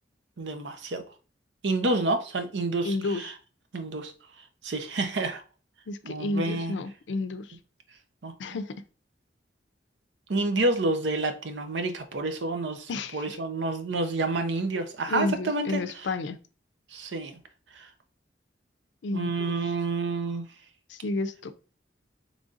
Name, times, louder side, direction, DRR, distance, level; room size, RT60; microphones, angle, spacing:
voice 1, 0.4-1.0 1.6-3.3 3.7-4.1 4.6-5.4 6.0-6.7 8.2-8.3 10.3-15.8 16.9-17.4 17.7-17.9 19.1-20.4, right 2 dB, 85° right, 0.6 m, -29 dB
voice 2, 2.8-3.3 5.9-7.6 8.4-8.7 12.9-13.2 15.1-16.4 19.0-19.7 20.9-21.5, left 3 dB, 85° left, 0.4 m, -31 dB
3.9 x 3.2 x 2.4 m
head